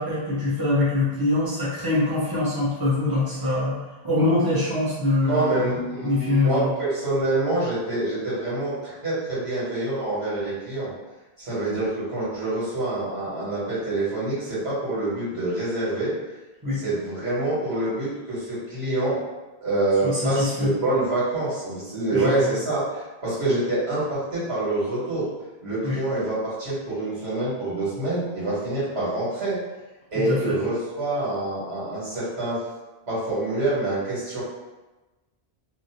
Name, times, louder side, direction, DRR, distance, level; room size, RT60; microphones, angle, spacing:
voice 1, 0.0-3.8 4.0-6.7 16.6-16.8 20.0-20.7 22.1-22.5 25.8-26.0 30.1-30.5, left 2 dB, 20° right, -8 dB, 0.9 m, -24 dB
voice 2, 5.2-10.9 11.4-16.1 16.7-19.2 19.6-25.3 25.6-29.6 30.1-32.6 33.1-34.4, right 2 dB, 90° right, -10 dB, 1.8 m, -26 dB
2.8 x 2.8 x 2.9 m, 1.1 s
omnidirectional pair, 1.0 m